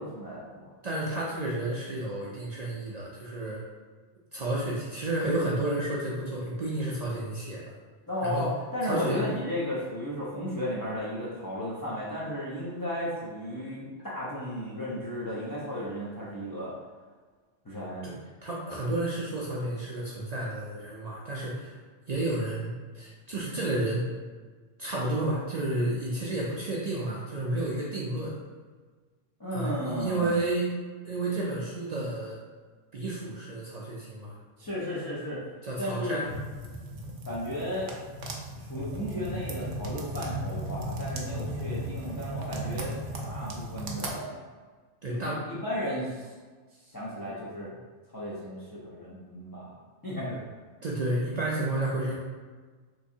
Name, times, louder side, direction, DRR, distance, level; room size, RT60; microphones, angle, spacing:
voice 1, 0.0-0.6 8.1-16.8 17.6-18.0 29.4-30.3 34.6-35.4 35.8-36.2 37.2-37.9 38.5-42.9 43.2-44.4 45.1-46.3 46.8-47.7 48.1-49.7 50.0-50.4, equal, 30° left, -8 dB, 0.4 m, -34 dB
voice 2, 0.8-3.6 4.3-7.7 8.2-8.5 8.8-9.2 18.0-18.1 18.4-21.7 22.1-24.0 24.8-28.3 29.5-30.6 31.0-32.4 32.9-34.3 35.6-36.3 45.0-45.4 50.8-52.2, right 2 dB, 65° right, -4 dB, 0.4 m, -31 dB
sound 1, 36.2-44.1, right 1 dB, 85° right, 1.0 m, -36 dB
3.5 x 3.0 x 2.6 m, 1.5 s
omnidirectional pair, 1.3 m